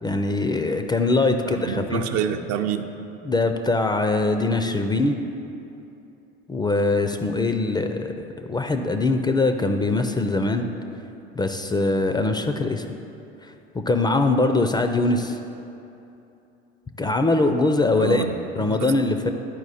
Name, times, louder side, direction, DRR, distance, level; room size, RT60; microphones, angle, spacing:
voice 1, 0.0-2.0 3.2-5.1 6.5-10.7 11.4-12.9 13.7-15.4 17.0-18.2 18.6-19.3, left 2 dB, 15° left, 6 dB, 0.4 m, -22 dB
voice 2, 1.2-2.9 18.0-18.9, right 8 dB, 55° right, 7 dB, 0.6 m, -28 dB
10.5 x 4.5 x 4.2 m, 2.8 s
hypercardioid pair, 80°, 31 cm